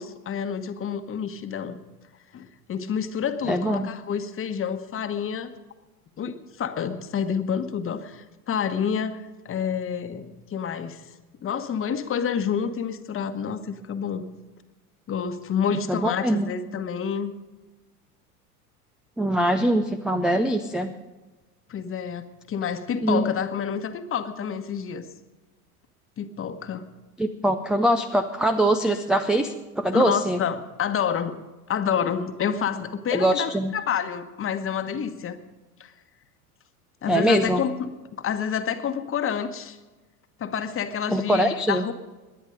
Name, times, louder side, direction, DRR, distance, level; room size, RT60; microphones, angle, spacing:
voice 1, 0.0-1.8 2.3-5.5 6.2-11.0 11.4-14.3 15.1-17.3 21.7-25.1 26.2-26.9 29.9-31.4 31.7-35.4 35.8-35.9 37.0-39.8 40.4-41.9, left 7 dB, 30° left, 9 dB, 1.2 m, -28 dB
voice 2, 3.5-3.9 15.9-16.5 19.2-20.9 23.0-23.2 27.2-30.4 33.1-33.7 37.1-37.6 41.1-41.9, right 1 dB, ahead, 7 dB, 0.3 m, -23 dB
20.0 x 10.0 x 5.2 m, 1.2 s
hypercardioid pair, 80°, 46 cm